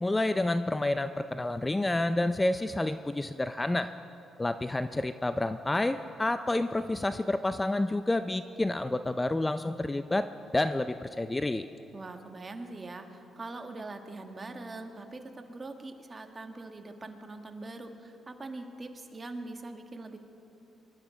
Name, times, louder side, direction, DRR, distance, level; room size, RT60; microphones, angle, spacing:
voice 1, 0.0-3.9 4.4-10.3 10.5-11.7, left 2 dB, 15° left, 10 dB, 0.5 m, -29 dB
voice 2, 11.9-20.2, right 2 dB, 30° right, 5 dB, 1.5 m, -42 dB
24.0 x 12.0 x 5.1 m, 2.9 s
cardioid pair, 90°, 0 cm